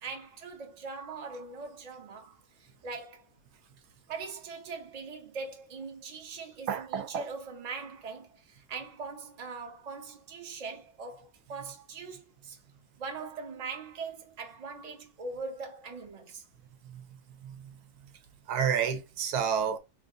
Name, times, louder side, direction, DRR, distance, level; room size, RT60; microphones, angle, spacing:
voice 1, 0.0-3.3 4.1-12.6 13.0-16.4, right 4 dB, 35° right, 0.7 m, -41 dB
voice 2, 6.7-7.3 16.8-17.7 18.5-19.8, right 7 dB, 90° right, 1.2 m, -31 dB
3.1 x 2.5 x 3.7 m
omnidirectional pair, 1.7 m